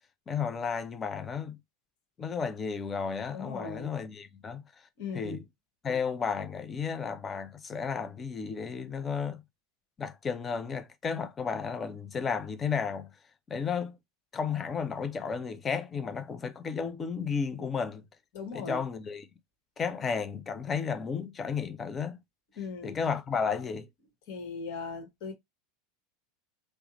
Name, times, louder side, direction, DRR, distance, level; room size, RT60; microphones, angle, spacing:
voice 1, 0.3-1.6 2.2-4.6 5.1-5.4 5.8-9.4 10.0-13.1 13.5-14.0 14.3-18.0 18.5-19.3 19.8-22.2 22.8-23.9, left 6 dB, 25° left, 0.6 m, -33 dB
voice 2, 3.3-3.9 5.0-5.4 18.3-18.8 22.6-23.0 24.3-25.3, left 4 dB, 55° left, 1.3 m, -38 dB
3.4 x 2.1 x 3.0 m
figure-of-eight pair, 80°, 0 cm